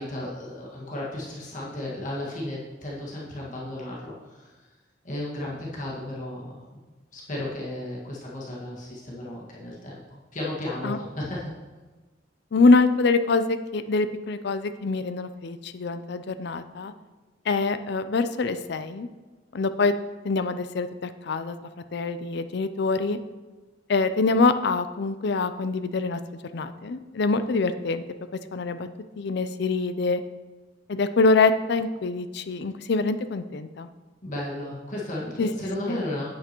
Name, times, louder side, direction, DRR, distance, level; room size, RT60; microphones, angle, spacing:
voice 1, 0.0-4.5 5.0-6.6 7.1-11.5 34.2-36.3, left 1 dB, 45° left, -5 dB, 1.8 m, -34 dB
voice 2, 12.5-16.9 17.5-19.1 19.5-19.9 20.2-21.6 21.9-23.2 23.9-26.2 26.5-28.0 28.5-28.9 29.2-30.2 30.9-33.9 35.4-35.5 35.8-36.0, left 3 dB, 60° left, 11 dB, 0.5 m, -24 dB
9.4 x 8.2 x 3.0 m, 1.3 s
head